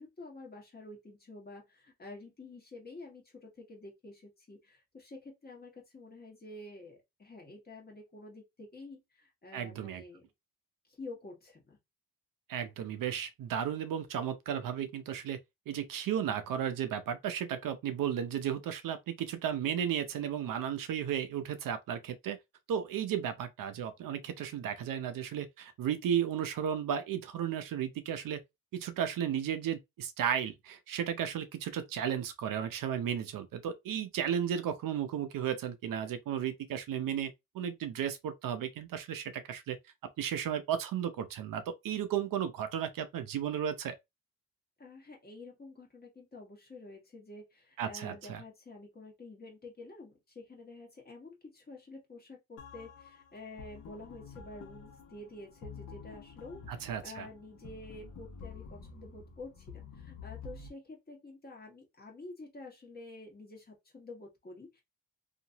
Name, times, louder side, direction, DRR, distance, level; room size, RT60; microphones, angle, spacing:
voice 1, 0.0-10.2 10.9-11.8 44.8-64.8, left 2 dB, 25° left, 1.3 m, -49 dB
voice 2, 9.5-10.0 12.5-15.4 15.7-22.4 22.7-28.4 28.7-39.8 40.2-43.9 47.8-48.4 56.7-57.3, right 9 dB, 65° right, 0.6 m, -34 dB
sound 1, 52.6-60.7, left 5 dB, 60° left, 0.9 m, -49 dB
2.8 x 2.5 x 2.7 m
cardioid pair, 120°, 35 cm